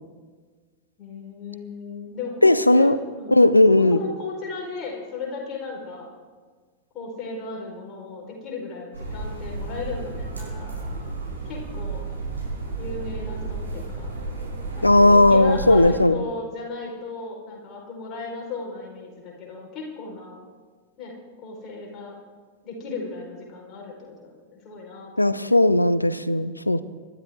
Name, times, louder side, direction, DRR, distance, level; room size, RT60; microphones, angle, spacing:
voice 1, 1.0-6.1 6.9-10.7 11.4-12.0 12.8-14.1 14.7-20.4 21.0-21.2 21.4-22.2 22.6-25.2, left 4 dB, 30° left, -1 dB, 4.6 m, -35 dB
voice 2, 2.4-3.0 3.3-4.0 14.8-16.1 25.2-26.8, left 2 dB, 85° left, 16 dB, 0.6 m, -16 dB
sound 1, 8.9-15.9, right 3 dB, 85° right, 5.2 m, -32 dB
25.0 x 12.5 x 3.7 m, 1.5 s
figure-of-eight pair, 90°, 0 cm